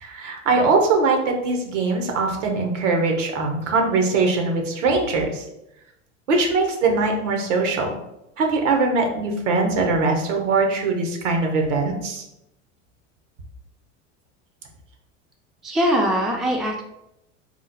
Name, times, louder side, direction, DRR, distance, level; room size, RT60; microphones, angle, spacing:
voice 1, 0.0-5.4 6.3-7.9 8.4-12.2, right 3 dB, 85° right, 3 dB, 0.9 m, -21 dB
voice 2, 15.6-16.8, equal, ahead, 1 dB, 0.3 m, -21 dB
3.0 x 2.1 x 3.9 m, 0.85 s
hypercardioid pair, 90°, 36 cm